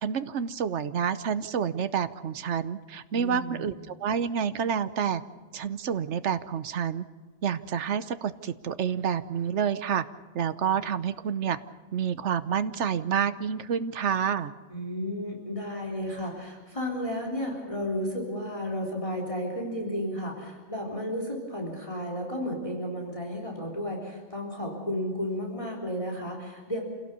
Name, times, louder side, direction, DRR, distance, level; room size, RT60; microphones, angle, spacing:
voice 1, 0.0-5.2 5.5-7.1 7.4-10.0 10.3-11.6 11.9-14.5, right 7 dB, 80° right, 12 dB, 1.2 m, -28 dB
voice 2, 3.1-3.8 14.7-26.8, equal, 30° left, 0 dB, 3.7 m, -33 dB
27.5 x 17.0 x 6.9 m, 1.4 s
omnidirectional pair, 1.2 m